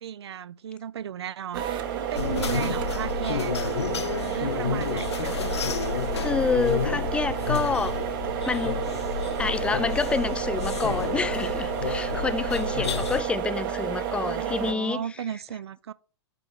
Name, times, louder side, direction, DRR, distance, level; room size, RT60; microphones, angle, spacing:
voice 1, 0.0-3.7 4.1-5.5 14.2-15.9, right 9 dB, 65° right, 0.4 m, -35 dB
sound 1, 1.5-14.7, right 8 dB, 50° right, 1.0 m, -31 dB
sound 2, 2.2-13.2, left 7 dB, 70° left, 0.6 m, -31 dB
voice 2, 6.2-8.0 8.5-8.8 9.4-15.1, left 4 dB, 5° left, 0.3 m, -28 dB
9.8 x 3.4 x 5.0 m
figure-of-eight pair, 100°, 14 cm